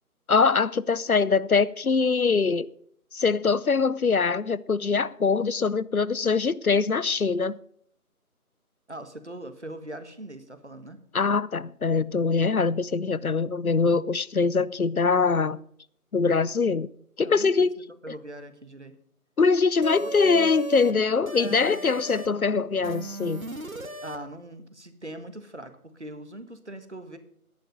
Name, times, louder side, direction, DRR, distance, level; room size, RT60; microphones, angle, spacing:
voice 1, 0.3-2.7 3.1-7.6 11.1-15.6 16.1-16.9 17.2-17.7 19.4-23.5, left 4 dB, 70° left, 0.7 m, -23 dB
voice 2, 8.9-11.0 17.2-17.7 18.0-19.0 20.0-20.5 21.3-21.8 24.0-27.2, right 1 dB, 50° right, 1.6 m, -41 dB
sound 1, 19.8-20.9 21.2-22.3 22.8-24.2, right 2 dB, 65° right, 1.7 m, -36 dB
13.5 x 10.5 x 5.3 m
figure-of-eight pair, 175°, 45 cm